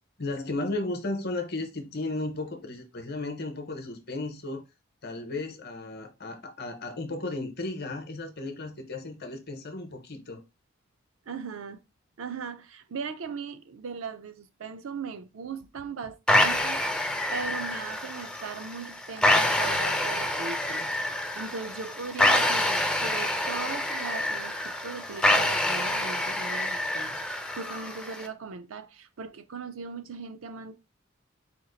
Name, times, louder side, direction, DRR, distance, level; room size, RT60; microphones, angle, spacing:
voice 1, 0.2-4.6 5.0-10.4, left 2 dB, 50° left, 0.8 m, -34 dB
voice 2, 11.3-11.8 12.2-16.8 17.3-27.2 27.6-30.8, right 5 dB, 80° right, 0.5 m, -38 dB
sound 1, 16.3-28.3, left 1 dB, 5° left, 0.4 m, -27 dB
4.3 x 2.4 x 3.8 m
head